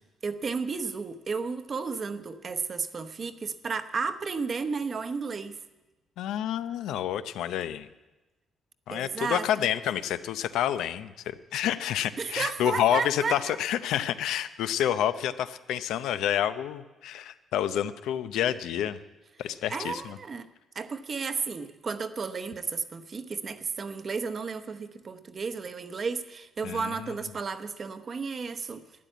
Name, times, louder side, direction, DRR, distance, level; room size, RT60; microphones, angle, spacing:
voice 1, 0.2-5.6 8.9-9.4 12.2-13.6 19.7-20.5 20.7-28.8, right 5 dB, 35° right, 9 dB, 0.9 m, -33 dB
voice 2, 6.2-7.9 8.9-19.0 19.4-20.2 26.6-27.1, left 11 dB, 85° left, 12 dB, 0.7 m, -29 dB
12.5 x 10.5 x 9.2 m, 1.1 s
cardioid pair, 125°, 0 cm